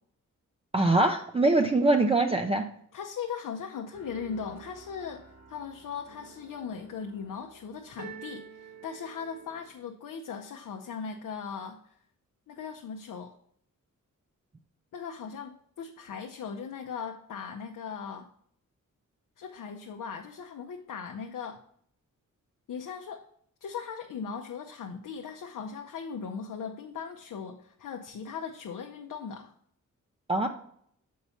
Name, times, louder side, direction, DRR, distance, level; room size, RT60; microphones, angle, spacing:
voice 1, 0.7-2.6 30.3-30.5, right 2 dB, 20° right, 4 dB, 0.4 m, -23 dB
voice 2, 2.9-5.2 5.5-12.0 12.5-13.3 14.9-18.3 19.4-21.6 22.7-23.2 23.6-29.5, left 6 dB, 85° left, 4 dB, 0.6 m, -39 dB
sound 1, 3.9-9.7, right 6 dB, 65° right, 2.2 m, -49 dB
6.9 x 4.6 x 4.2 m, 0.66 s
wide cardioid pair, 120°, 31 cm